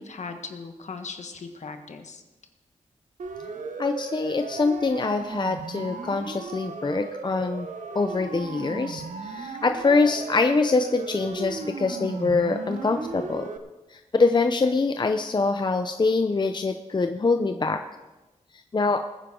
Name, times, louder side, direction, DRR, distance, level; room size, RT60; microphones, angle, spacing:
voice 1, 0.0-2.2, left 4 dB, 65° left, 6 dB, 1.4 m, -38 dB
Siren, 3.2-13.6, right 4 dB, 85° right, 1.0 m, -36 dB
voice 2, 3.8-7.7 7.9-13.5 13.9-17.8 18.7-19.0, left 3 dB, 35° left, 7 dB, 0.6 m, -24 dB
20.0 x 9.6 x 3.8 m, 1.1 s
wide cardioid pair, 80°, 13 cm